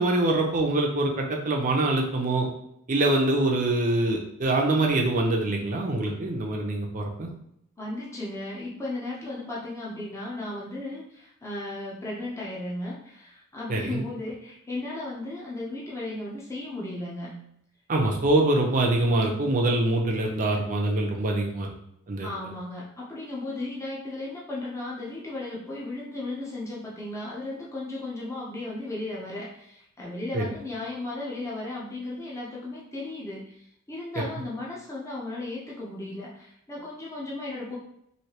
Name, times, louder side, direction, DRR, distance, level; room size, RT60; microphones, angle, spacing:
voice 1, 0.0-2.5 2.9-7.3 13.7-14.0 17.9-21.7 22.1-22.3 30.3-30.5, right 2 dB, 35° right, 1 dB, 0.5 m, -24 dB
voice 2, 7.8-17.3 22.2-37.8, left 2 dB, 15° left, -5 dB, 0.6 m, -35 dB
3.2 x 2.7 x 2.8 m, 0.74 s
head